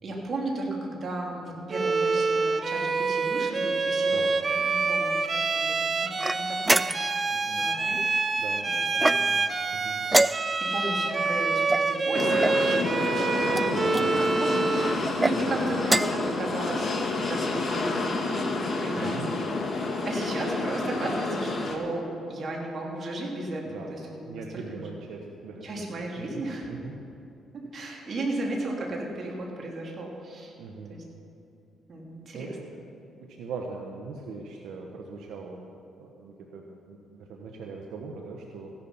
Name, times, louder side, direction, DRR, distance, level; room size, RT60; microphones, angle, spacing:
voice 1, 0.0-4.2 4.5-5.3 5.5-6.1 6.3-7.0 7.5-8.0 8.6-9.0 10.6-17.0 17.2-18.5 18.8-19.2 19.6-19.7 20.0-24.8 25.6-26.7 27.7-30.5 30.9-31.0 31.9-32.6, right 2 dB, 50° right, -1 dB, 3.1 m, -35 dB
Bowed string instrument, 1.7-15.1, right 4 dB, 35° right, 0.8 m, -27 dB
sound 1, 6.2-7.3 8.9-9.5 10.1-10.8 11.7-12.6 13.5-14.1 15.0-15.4 15.8-16.3, right 2 dB, 15° right, 0.3 m, -26 dB
voice 2, 7.3-7.9 8.4-8.7 9.1-10.0 13.7-14.1 15.4-15.7 18.9-19.3 23.7-23.9 24.2-25.9 26.1-27.0 30.6-30.9 32.3-32.8 33.4-38.7, right 4 dB, 85° right, 1 dB, 1.2 m, -41 dB
sound 2, 12.1-21.8, left 3 dB, 40° left, 2.1 m, -29 dB
15.5 x 11.5 x 5.7 m, 2.7 s
cardioid pair, 90°, 0 cm